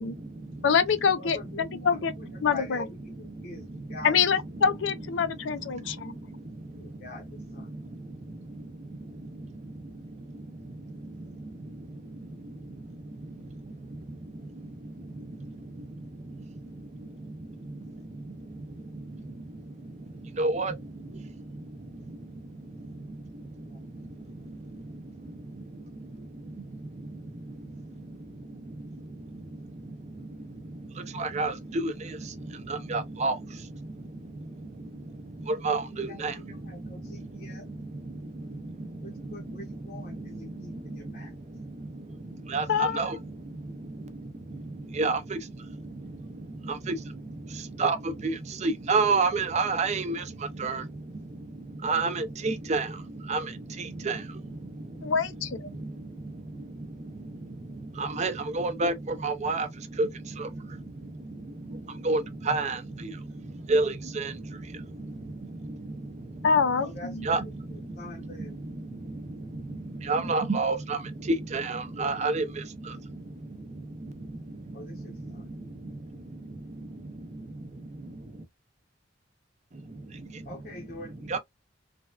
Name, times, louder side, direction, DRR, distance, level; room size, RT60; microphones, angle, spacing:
voice 1, 0.0-0.7 2.4-2.5 3.3-4.0 4.5-4.6 5.2-55.3 55.6-66.5 67.2-78.4 79.7-80.5 81.3-81.4, right 3 dB, 35° right, 0.5 m, -34 dB
voice 2, 0.6-2.1 2.4-2.8 4.0-6.2 42.7-43.0 55.0-55.7 66.4-67.3, left 6 dB, 70° left, 0.5 m, -25 dB
voice 3, 1.2-4.2 6.8-7.2 7.5-7.7 23.7-23.8 35.8-37.7 39.0-41.3 42.6-42.9 52.1-52.2 66.8-68.6 74.7-75.5 80.4-81.3, left 2 dB, 50° left, 0.8 m, -45 dB
3.3 x 2.2 x 2.3 m
head